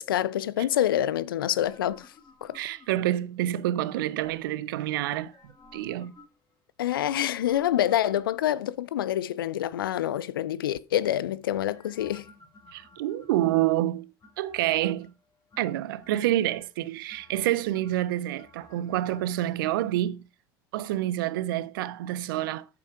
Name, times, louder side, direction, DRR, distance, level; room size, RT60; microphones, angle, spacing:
voice 1, 0.0-2.1 2.4-2.6 6.8-12.3, left 12 dB, 90° left, 0.5 m, -27 dB
sound 1, 1.4-3.2 3.9-4.7 5.1-6.5 7.0-8.7 11.5-13.6 14.2-15.1 15.5-16.7 17.1-19.5 19.7-19.8, left 3 dB, 30° left, 3.1 m, -55 dB
voice 2, 2.5-5.3 5.7-6.1 12.7-14.1 14.4-15.1 15.6-20.2 20.7-22.7, right 14 dB, 80° right, 0.5 m, -28 dB
8.3 x 6.9 x 4.8 m
hypercardioid pair, 70°, 11 cm